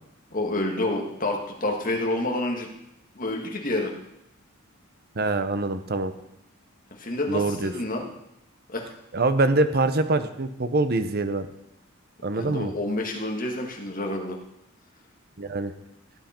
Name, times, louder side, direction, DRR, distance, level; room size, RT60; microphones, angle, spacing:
voice 1, 0.3-2.7 3.2-3.9 7.0-8.1 8.7-8.9 12.3-14.4, left 2 dB, 40° left, 1 dB, 1.8 m, -28 dB
voice 2, 5.2-6.1 7.3-7.7 9.1-11.5 12.2-12.7 15.4-15.7, right 2 dB, 45° right, 10 dB, 0.8 m, -24 dB
17.0 x 8.2 x 4.4 m, 0.82 s
head